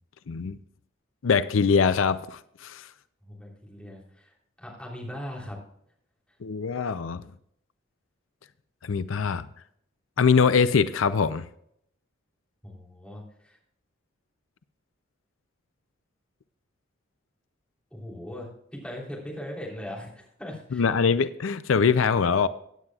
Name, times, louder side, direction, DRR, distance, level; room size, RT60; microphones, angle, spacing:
voice 1, 0.3-0.6 1.2-2.9 6.4-7.2 8.8-9.4 10.2-11.4 20.7-22.5, left 5 dB, 85° left, 0.5 m, -23 dB
voice 2, 3.2-5.6 12.6-13.6 17.9-20.9, equal, 5° left, 3.4 m, -40 dB
16.5 x 9.7 x 2.4 m
head